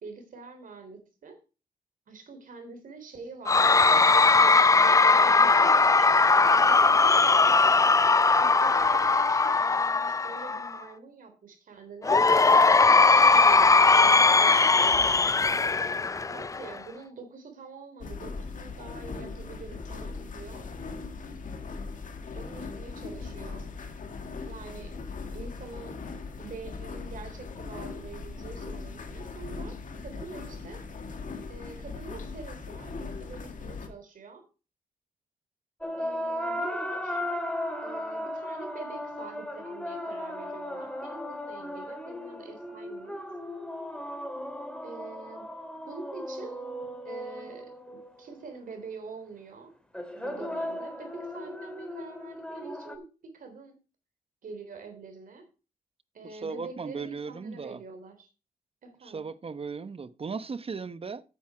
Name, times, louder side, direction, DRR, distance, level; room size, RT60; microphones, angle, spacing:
voice 1, 0.0-1.4 2.1-4.1 4.8-6.2 6.5-7.3 8.2-12.2 12.7-15.3 16.3-20.6 22.3-23.7 24.5-25.0 25.3-26.0 26.4-30.8 31.5-34.4 36.0-37.2 37.8-43.2 44.8-45.5 45.9-46.6 47.0-47.7 48.2-49.7 50.2-53.8 54.4-55.5 56.1-58.3 58.8-59.3, right 4 dB, 65° right, 3.6 m, -45 dB
Cheering / Crowd, 3.5-10.8 12.0-16.8, left 4 dB, 20° left, 0.4 m, -20 dB
sound 1, 18.0-33.9, left 4 dB, 60° left, 1.9 m, -39 dB
sound 2, 35.8-48.4 49.9-53.0, left 1 dB, 5° left, 2.3 m, -36 dB
voice 2, 56.2-57.8 59.0-61.2, right 5 dB, 40° right, 0.9 m, -37 dB
9.2 x 8.2 x 4.8 m
supercardioid pair, 50°, 15 cm